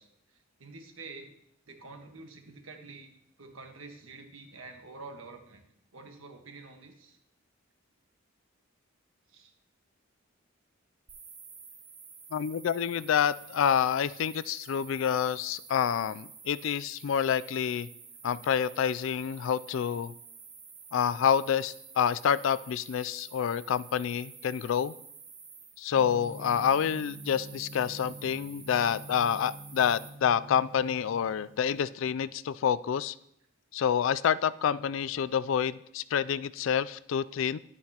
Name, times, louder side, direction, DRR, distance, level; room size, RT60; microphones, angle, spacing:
voice 1, 0.0-1.3 1.7-3.1 3.4-5.6 5.9-7.2 9.3-9.5 28.7-28.9, right 3 dB, 75° right, 4 dB, 1.5 m, -48 dB
sound 1, 11.1-30.1, right 5 dB, 25° right, 3.8 m, -50 dB
voice 2, 12.3-17.9 18.2-20.1 20.9-24.9 25.8-33.1 33.7-37.6, left 8 dB, 65° left, 17 dB, 0.3 m, -28 dB
Gong, 26.0-31.8, right 1 dB, 45° right, 1.2 m, -47 dB
11.5 x 10.5 x 2.9 m, 0.75 s
head